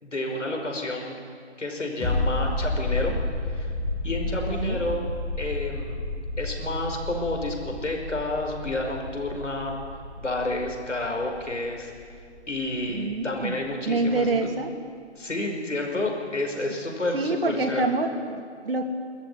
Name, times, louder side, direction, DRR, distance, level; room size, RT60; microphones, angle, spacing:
voice 1, 0.0-1.2 1.6-3.1 3.5-3.7 4.0-5.1 5.4-6.0 6.4-9.8 10.2-12.1 12.5-14.3 15.2-17.9, left 2 dB, 85° left, 2 dB, 5.5 m, -30 dB
sound 1, 2.0-13.3 13.6-13.7, left 2 dB, 10° left, 1.5 m, -31 dB
voice 2, 4.2-4.9 12.9-13.6 13.9-14.7 17.1-18.8, right 3 dB, 55° right, 4 dB, 2.6 m, -27 dB
22.0 x 14.0 x 9.8 m, 2.1 s
figure-of-eight pair, 160°, 35 cm